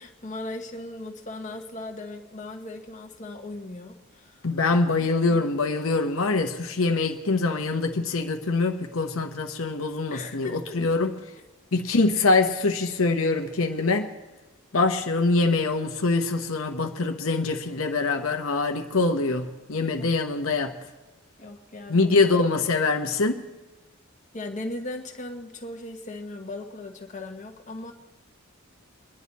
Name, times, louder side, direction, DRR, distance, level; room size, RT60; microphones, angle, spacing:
voice 1, 0.0-4.5 10.1-10.8 19.8-20.1 21.4-22.1 24.3-27.9, left 2 dB, 35° left, 1.3 m, -38 dB
voice 2, 4.4-11.2 11.7-14.1 14.7-20.7 21.9-23.4, left 3 dB, 80° left, 1.0 m, -24 dB
23.5 x 10.5 x 4.2 m
head